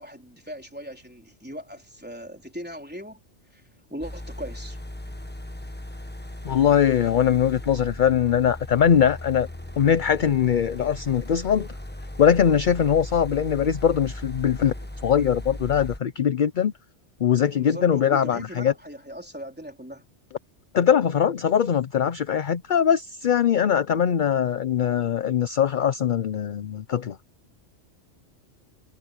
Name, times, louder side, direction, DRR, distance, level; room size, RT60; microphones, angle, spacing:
voice 1, 0.0-3.2 3.5-3.6 3.9-4.8 17.6-20.1, equal, 10° right, 3.8 m, -39 dB
sound 1, 4.0-16.0, left 1 dB, 10° left, 1.2 m, -37 dB
voice 2, 6.4-9.5 9.8-11.7 12.2-14.7 15.0-16.7 17.2-18.7 20.7-27.2, left 8 dB, 50° left, 0.7 m, -21 dB
omnidirectional pair, 1.2 m